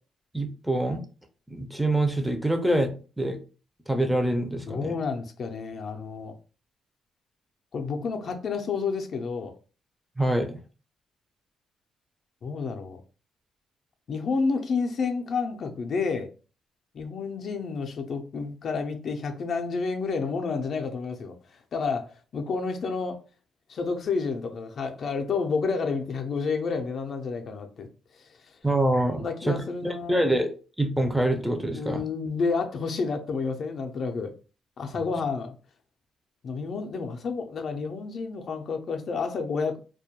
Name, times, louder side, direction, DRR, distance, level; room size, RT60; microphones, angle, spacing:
voice 1, 0.3-1.0 1.5-3.4 3.9-4.9 10.2-10.6 28.6-32.0, right 1 dB, 5° right, 0.4 m, -26 dB
voice 2, 4.7-6.3 7.7-9.5 12.4-13.0 14.1-16.3 16.9-23.2 23.7-27.9 28.4-28.5 29.1-30.2 31.7-34.3 34.8-35.5 36.4-39.8, left 4 dB, 55° left, 0.4 m, -30 dB
2.2 x 2.1 x 2.8 m
cardioid pair, 90°, 0 cm